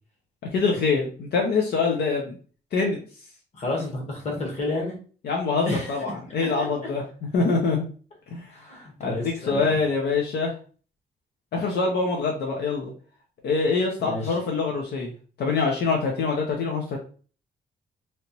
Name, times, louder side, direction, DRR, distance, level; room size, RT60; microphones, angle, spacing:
voice 1, 0.5-2.4 2.7-3.0 5.2-7.9 8.3-8.5 9.0-10.5 11.5-12.9 13.4-17.0, left 4 dB, 70° left, 0 dB, 0.7 m, -25 dB
voice 2, 3.5-5.0 5.6-5.9 6.4-6.7 8.5-9.7 14.0-14.4, left 2 dB, 40° left, 0 dB, 1.2 m, -30 dB
3.2 x 2.9 x 2.8 m, 0.39 s
wide cardioid pair, 175°, 17 cm